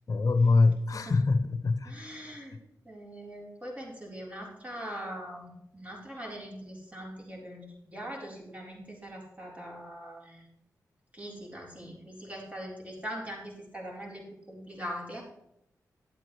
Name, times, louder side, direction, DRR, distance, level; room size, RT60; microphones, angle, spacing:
voice 1, 0.1-1.9, left 3 dB, 55° left, 0.8 m, -24 dB
voice 2, 1.8-2.6 2.8-10.5 11.1-15.2, equal, 20° right, 4.0 m, -42 dB
11.5 x 8.4 x 3.3 m
cardioid pair, 50°, 7 cm